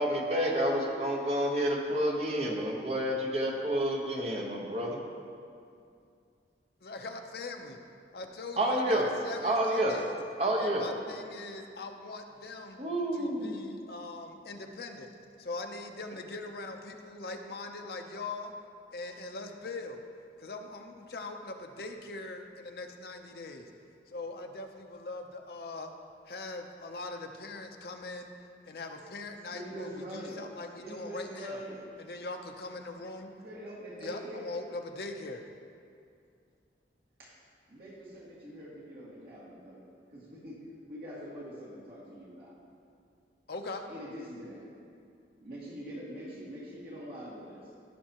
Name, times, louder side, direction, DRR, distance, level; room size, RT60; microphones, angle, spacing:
voice 1, 0.0-5.0 8.6-9.1 9.4-10.0 10.4-10.9 12.8-13.6, right 1 dB, 35° right, -1 dB, 1.1 m, -29 dB
voice 2, 6.8-7.8 8.1-10.1 10.6-12.8 13.2-15.1 15.4-18.5 18.9-20.0 20.4-23.7 24.1-25.9 26.3-28.3 28.6-31.6 32.0-33.3 34.0-35.4 43.5-43.9, left 3 dB, 60° left, 4 dB, 0.7 m, -41 dB
voice 3, 29.5-30.4 30.8-31.8 33.3-34.6 37.2-37.3 37.7-42.5 43.9-44.6 45.4-47.7, equal, 55° right, -8 dB, 2.1 m, -44 dB
15.5 x 6.4 x 3.0 m, 2.4 s
head